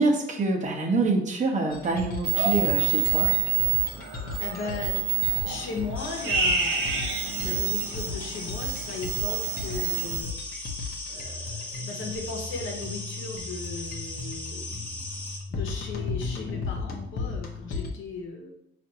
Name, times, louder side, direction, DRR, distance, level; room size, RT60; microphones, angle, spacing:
voice 1, 0.0-3.3, right 3 dB, 35° right, 1 dB, 0.7 m, -25 dB
sound 1, 1.7-17.9, left 4 dB, 50° left, 0.7 m, -36 dB
sound 2, 2.3-10.2, right 9 dB, 75° right, 0.7 m, -27 dB
voice 2, 4.4-5.0 5.4-10.7 11.1-15.0 15.5-18.5, left 4 dB, 80° left, 1 dB, 0.9 m, -37 dB
sound 3, 6.0-15.4, left 1 dB, 10° left, 0.9 m, -38 dB
4.3 x 2.5 x 2.8 m, 0.79 s
cardioid pair, 90°, 20 cm